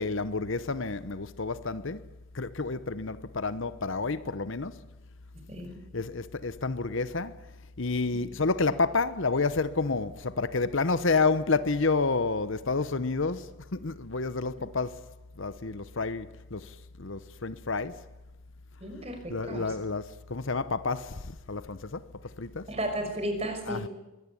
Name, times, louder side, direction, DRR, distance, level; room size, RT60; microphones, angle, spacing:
voice 1, 0.0-2.1 2.3-4.8 5.9-7.4 7.8-15.1 15.4-18.0 19.3-22.7 23.6-23.9, left 3 dB, 55° left, 0.9 m, -30 dB
voice 2, 5.3-5.8 8.1-8.2 18.8-19.7 22.7-23.9, right 1 dB, 30° right, 5.6 m, -34 dB
23.0 x 18.0 x 9.9 m
head